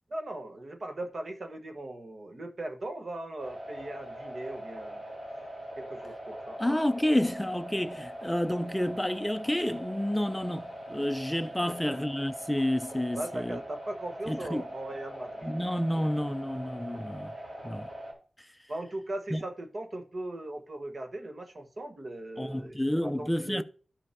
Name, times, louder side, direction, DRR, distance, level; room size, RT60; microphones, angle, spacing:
voice 1, 0.1-5.0 5.8-6.6 11.6-12.0 13.1-15.5 16.0-16.3 16.9-17.1 17.4-17.5 18.7-23.6, right 1 dB, 50° right, 1.3 m, -39 dB
sound 1, 3.4-18.1, right 1 dB, 75° right, 3.8 m, -42 dB
voice 2, 6.6-13.6 14.3-14.6 15.4-17.3 17.6-17.9 19.3-19.4 22.4-23.6, left 1 dB, 5° left, 0.5 m, -30 dB
13.0 x 5.5 x 2.7 m
wide cardioid pair, 115°, 0 cm